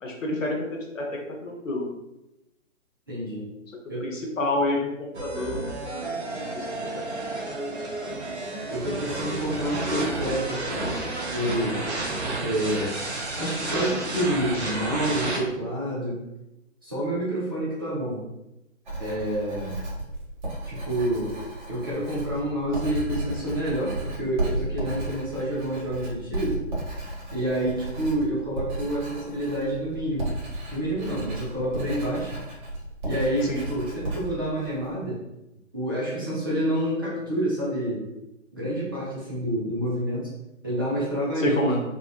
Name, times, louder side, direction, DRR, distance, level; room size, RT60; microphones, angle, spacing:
voice 1, 0.0-1.9 4.0-6.2 6.5-7.0 33.5-33.6 41.4-41.8, left 2 dB, 75° left, 1 dB, 0.9 m, -29 dB
voice 2, 3.1-3.5 3.9-4.1 8.7-11.8 12.4-13.0 13.4-16.2 16.8-18.2 19.0-19.8 20.7-21.4 21.7-26.6 27.3-30.3 30.7-32.4 33.0-35.2 35.7-38.1 38.5-40.3 40.6-41.7, right 1 dB, 20° right, -7 dB, 0.4 m, -28 dB
sound 1, 5.1-15.4, right 2 dB, 60° right, 0.9 m, -31 dB
Writing, 18.9-34.9, right 1 dB, 35° right, 1.1 m, -34 dB
3.6 x 2.2 x 2.2 m, 0.94 s
figure-of-eight pair, 130°, 39 cm